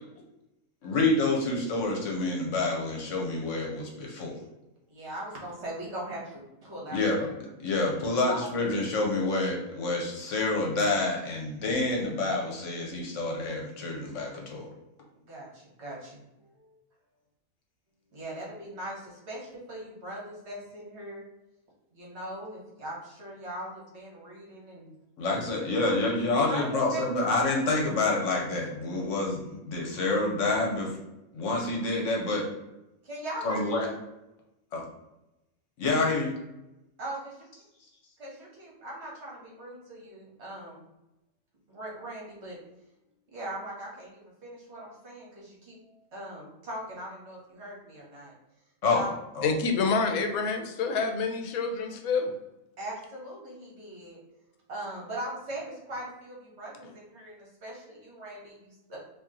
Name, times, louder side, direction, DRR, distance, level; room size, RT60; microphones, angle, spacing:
voice 1, 0.8-4.4 6.9-7.3 7.6-14.7 25.2-30.9 31.3-32.5 33.4-33.9 34.7-34.8 35.8-36.3 48.8-49.0 49.3-49.5, left 2 dB, 65° left, -1 dB, 1.1 m, -28 dB
voice 2, 4.9-7.0 8.3-8.4 15.3-16.2 16.5-16.8 18.1-21.3 21.9-24.9 26.5-27.0 33.0-33.7 37.0-37.3 38.2-40.8 41.7-42.6 43.3-48.3 48.9-49.1 52.8-54.2 54.7-59.0, right 1 dB, 50° right, -4 dB, 1.3 m, -40 dB
voice 3, 49.4-52.4, left 4 dB, 85° left, 5 dB, 1.0 m, -27 dB
2.9 x 2.7 x 3.7 m, 0.94 s
omnidirectional pair, 1.5 m